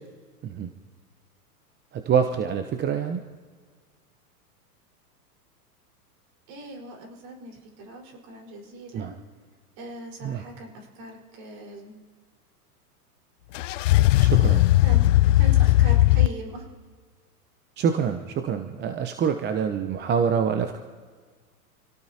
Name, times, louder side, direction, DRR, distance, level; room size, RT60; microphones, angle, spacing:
voice 1, 1.9-3.2 8.9-9.1 10.2-10.4 14.2-14.7 17.8-20.8, right 7 dB, 20° right, 7 dB, 0.8 m, -26 dB
voice 2, 6.5-9.2 9.8-12.0 14.8-15.0 15.4-16.7, right 2 dB, 45° right, 1 dB, 4.8 m, -40 dB
sound 1, 13.5-16.3, left 16 dB, 55° left, 0.5 m, -18 dB
28.5 x 17.5 x 2.9 m, 1.5 s
hypercardioid pair, 105°, 47 cm